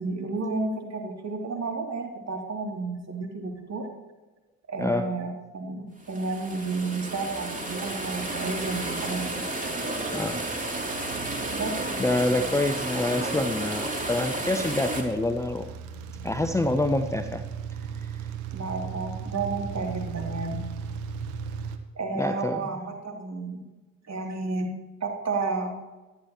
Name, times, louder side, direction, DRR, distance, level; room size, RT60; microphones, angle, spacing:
voice 1, 0.0-3.9 4.7-9.3 11.5-11.7 18.5-20.6 21.9-23.6 24.1-24.7 25.0-25.7, right 3 dB, 35° right, 1 dB, 3.1 m, -31 dB
sound 1, 6.0-15.0, right 2 dB, 15° right, 3.1 m, -32 dB
sound 2, 9.8-21.8, right 6 dB, 70° right, 1.3 m, -38 dB
voice 2, 12.0-15.7 16.2-17.4 18.0-18.1 22.1-22.7, left 2 dB, 5° left, 7 dB, 0.8 m, -26 dB
24.5 x 10.5 x 3.1 m, 1.1 s
figure-of-eight pair, 45°, 44 cm